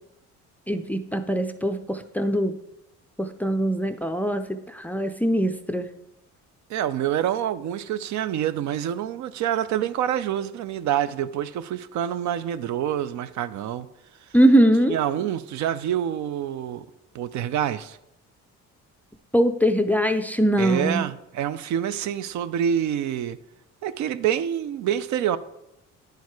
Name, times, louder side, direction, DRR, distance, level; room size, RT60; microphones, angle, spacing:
voice 1, 0.7-2.6 3.2-5.9 14.3-14.9 19.3-21.0, right 1 dB, 5° left, 0.4 m, -22 dB
voice 2, 6.7-13.9 14.2-14.3 14.9-16.9 17.1-18.0 20.6-23.4 23.8-25.4, right 10 dB, 70° right, 0.5 m, -27 dB
10.5 x 4.6 x 4.7 m
cardioid pair, 120°, 30 cm